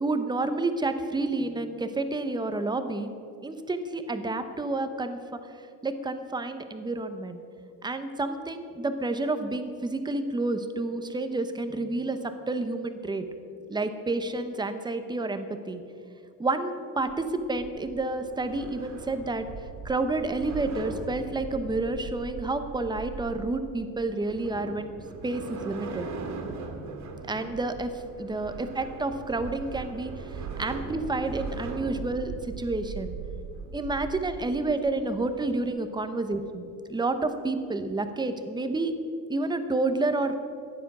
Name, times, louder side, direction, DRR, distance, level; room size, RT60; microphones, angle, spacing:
voice 1, 0.0-3.1 3.4-5.2 5.8-7.4 7.8-13.2 13.7-15.8 16.4-19.4 19.8-24.9 25.2-26.1 27.3-27.9 28.2-30.1 30.6-33.2 33.7-38.9 39.3-40.4, right 2 dB, 10° right, 9 dB, 0.9 m, -29 dB
sound 1, 17.0-35.7, right 4 dB, 55° right, 2.4 m, -40 dB
14.5 x 11.0 x 6.1 m, 2.5 s
cardioid pair, 145°, 35 cm